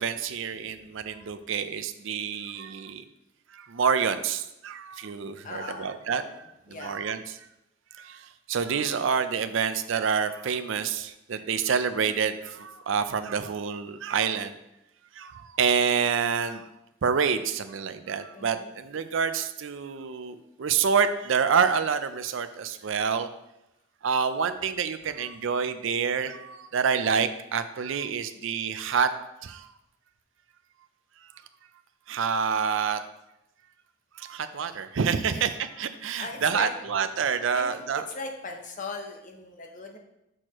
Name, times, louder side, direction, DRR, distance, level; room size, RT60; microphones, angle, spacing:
voice 1, 0.0-3.0 3.5-6.2 6.7-7.2 7.9-14.6 15.2-16.6 17.0-23.3 24.0-29.1 29.4-29.7 32.1-33.0 34.2-38.1, right 6 dB, 65° right, 10 dB, 0.4 m, -27 dB
voice 2, 5.4-7.0 18.3-18.7 35.3-35.5 36.2-36.7 37.5-40.0, left 3 dB, 40° left, 3 dB, 0.7 m, -39 dB
6.3 x 6.2 x 3.0 m, 0.89 s
head